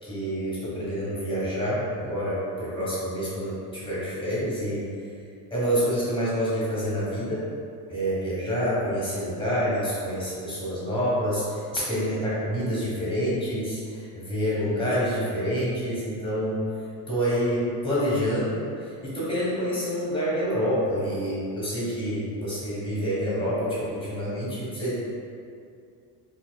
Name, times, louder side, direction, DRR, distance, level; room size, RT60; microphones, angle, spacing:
voice 1, 0.0-4.8 5.5-7.4 7.9-16.6 17.1-25.2, equal, 10° left, -8 dB, 1.3 m, -27 dB
3.8 x 2.8 x 2.3 m, 2.4 s
cardioid pair, 135°, 40 cm